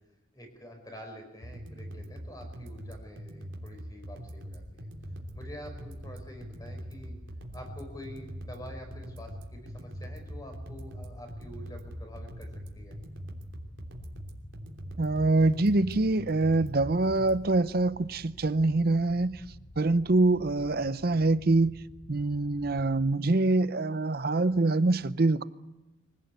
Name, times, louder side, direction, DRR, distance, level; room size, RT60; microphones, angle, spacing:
voice 1, 0.3-4.9 5.3-7.2 7.5-12.9, equal, 20° left, 5.2 m, -47 dB
sound 1, 1.4-17.4, equal, 80° right, 3.1 m, -43 dB
sound 2, 4.6-23.1, left 1 dB, 50° left, 1.0 m, -50 dB
voice 2, 15.0-19.4 19.8-21.7 22.1-25.4, right 2 dB, 55° right, 0.7 m, -25 dB
24.0 x 17.0 x 8.2 m
head